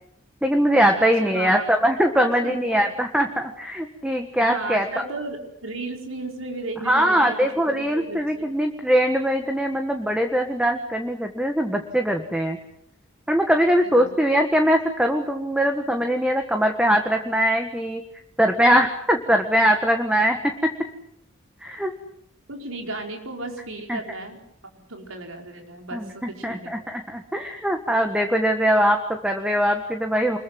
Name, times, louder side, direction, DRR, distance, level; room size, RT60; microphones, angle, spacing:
voice 1, 0.4-4.9 6.8-12.6 13.3-18.0 18.4-20.7 21.6-21.9 23.9-24.0 25.9-30.4, equal, 5° right, 5 dB, 1.6 m, -21 dB
voice 2, 1.0-1.6 2.1-2.8 4.5-8.5 13.9-14.1 22.5-24.4 24.9-26.7, right 2 dB, 80° right, 3 dB, 4.9 m, -34 dB
25.5 x 22.0 x 7.7 m, 0.70 s
head